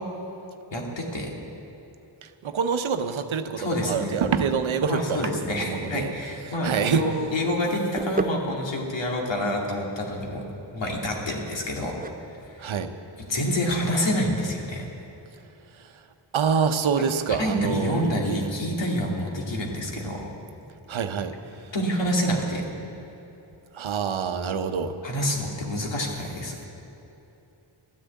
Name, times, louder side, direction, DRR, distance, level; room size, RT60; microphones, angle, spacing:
voice 1, 0.7-1.3 3.6-4.1 4.9-10.4 10.7-12.0 12.5-12.6 13.3-14.9 17.4-20.3 21.7-22.6 25.0-26.6, equal, 65° left, -1 dB, 2.4 m, -27 dB
voice 2, 2.2-6.1 6.6-7.1 12.6-12.9 15.7-16.0 16.3-18.4 20.9-21.7 23.7-25.0, right 6 dB, 75° right, 8 dB, 0.9 m, -26 dB
sound 1, 8.0-14.5, right 3 dB, 20° right, 0.5 m, -37 dB
13.0 x 10.0 x 8.3 m, 3.0 s
cardioid pair, 65°, 48 cm